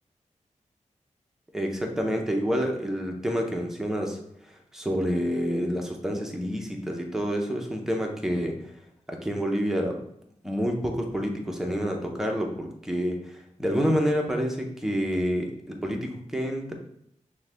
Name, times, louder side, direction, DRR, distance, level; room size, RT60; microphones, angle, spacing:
voice 1, 1.5-4.2 4.7-8.5 9.1-10.0 10.4-16.7, equal, 5° right, 1 dB, 0.6 m, -28 dB
6.2 x 2.2 x 3.3 m, 0.74 s
wide cardioid pair, 135°, 13 cm